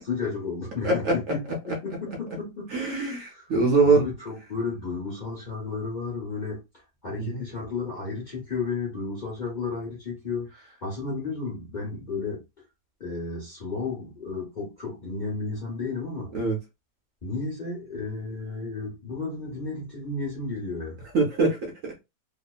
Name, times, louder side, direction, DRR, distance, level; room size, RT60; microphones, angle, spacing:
voice 1, 0.1-3.5 3.8-6.6 7.0-12.4 13.0-16.3 17.2-21.0, left 4 dB, 35° left, 0.9 m, -33 dB
voice 2, 0.8-1.3 2.7-4.1 7.2-7.4 16.3-16.6 21.1-22.0, right 3 dB, 60° right, 0.9 m, -23 dB
2.9 x 2.1 x 2.3 m
omnidirectional pair, 1.8 m